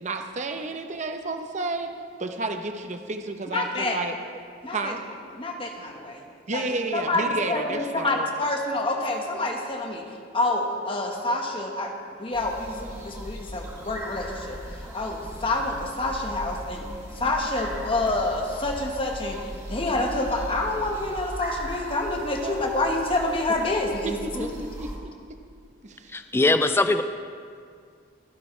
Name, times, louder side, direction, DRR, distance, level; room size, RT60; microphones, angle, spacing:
voice 1, 0.0-1.9 2.2-4.1 4.7-5.0 6.5-8.2 22.4-22.6 24.0-25.1 25.8-26.1, right 2 dB, 35° right, 5 dB, 0.8 m, -31 dB
voice 2, 3.5-4.0 4.6-4.9 5.4-6.6 6.9-16.8 17.1-24.5, left 2 dB, 30° left, 2 dB, 1.4 m, -28 dB
sound 1, 12.3-25.0, equal, 15° right, 2.0 m, -38 dB
voice 3, 26.1-27.0, left 2 dB, 10° left, 9 dB, 0.3 m, -21 dB
24.0 x 11.0 x 3.3 m, 2.2 s
head